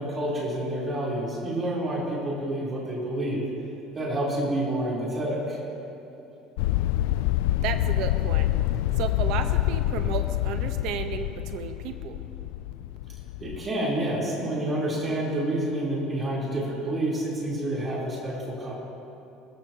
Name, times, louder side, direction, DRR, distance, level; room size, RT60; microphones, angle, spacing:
voice 1, 0.0-3.4 3.9-5.6 13.4-18.7, right 1 dB, 20° right, -6 dB, 4.0 m, -28 dB
sound 1, 6.6-13.7, left 14 dB, 80° left, 0.4 m, -26 dB
voice 2, 7.6-8.5 9.0-12.2, right 8 dB, 55° right, 7 dB, 1.1 m, -33 dB
23.0 x 21.0 x 3.0 m, 2.8 s
cardioid pair, 180°, 0 cm